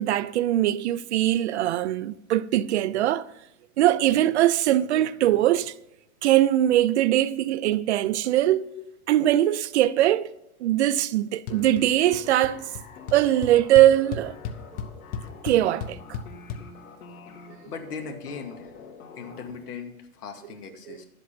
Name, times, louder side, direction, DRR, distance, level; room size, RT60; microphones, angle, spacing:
voice 1, 0.0-3.3 3.8-5.7 6.2-8.7 9.1-10.3 10.6-12.7 13.1-14.4 15.4-16.0 20.9-21.0, right 13 dB, 50° right, 0.4 m, -21 dB
sound 1, 11.5-19.5, left 5 dB, 65° left, 2.5 m, -46 dB
sound 2, 11.5-11.8 12.1-12.5 12.8-12.9 13.1-16.6, left 6 dB, 20° left, 0.6 m, -34 dB
voice 2, 17.7-18.8 19.2-21.0, left 5 dB, 85° left, 2.1 m, -39 dB
11.0 x 7.8 x 5.7 m
hypercardioid pair, 150°, 45 cm